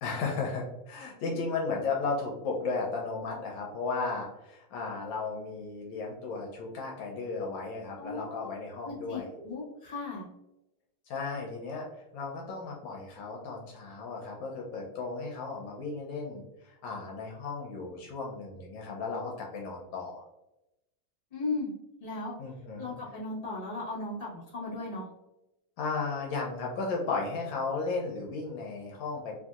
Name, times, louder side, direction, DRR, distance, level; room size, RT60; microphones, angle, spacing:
voice 1, 0.0-9.3 11.1-11.9 12.1-20.2 22.4-22.9 25.8-29.4, left 4 dB, 75° left, -1 dB, 1.3 m, -35 dB
voice 2, 8.0-8.5 8.8-10.3 21.3-21.7 22.0-22.4 22.8-25.1, left 3 dB, 35° left, -6 dB, 1.1 m, -36 dB
3.2 x 2.6 x 2.3 m, 0.91 s
omnidirectional pair, 2.2 m